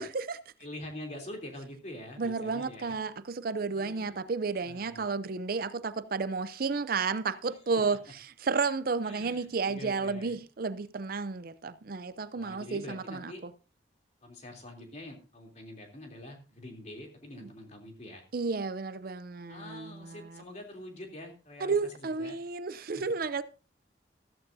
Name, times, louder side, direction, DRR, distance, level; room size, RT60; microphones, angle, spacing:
voice 1, 0.0-0.4 2.2-8.0 8.4-13.3 18.3-20.2 21.6-23.4, right 4 dB, 50° right, 0.5 m, -32 dB
voice 2, 0.6-3.0 3.7-4.2 4.6-5.1 7.5-7.8 9.0-10.4 12.3-13.4 14.2-18.2 19.5-22.4 22.7-23.2, left 1 dB, 40° left, 3.1 m, -45 dB
14.5 x 13.5 x 2.7 m
head